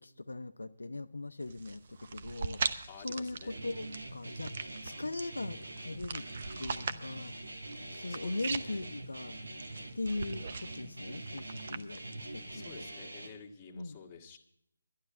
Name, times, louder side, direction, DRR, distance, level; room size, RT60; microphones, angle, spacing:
voice 1, 0.0-6.2 6.6-7.4 7.9-9.4 9.9-12.0 12.3-12.9 13.7-14.0, left 2 dB, 75° left, 0.5 m, -40 dB
sound 1, 1.4-12.9, right 5 dB, 45° right, 0.8 m, -42 dB
voice 2, 2.9-3.6 8.1-8.8 12.5-14.4, left 5 dB, 20° left, 1.6 m, -51 dB
Guitar, 3.5-13.3, right 1 dB, 75° right, 2.2 m, -44 dB
11.5 x 11.5 x 5.6 m
figure-of-eight pair, 150°, 0 cm